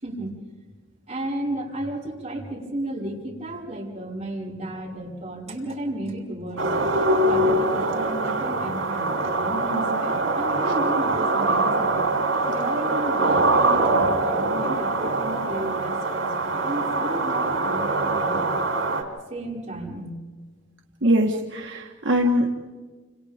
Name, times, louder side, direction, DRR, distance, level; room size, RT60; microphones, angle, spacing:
voice 1, 0.0-0.3 1.1-6.7 7.2-12.1 12.5-18.6 19.3-20.0, right 1 dB, 35° right, -5 dB, 5.5 m, -33 dB
sound 1, 6.6-19.0, right 2 dB, 85° right, 3.6 m, -23 dB
voice 2, 21.0-22.5, equal, 70° right, 0 dB, 1.5 m, -22 dB
29.5 x 27.0 x 3.6 m, 1.4 s
head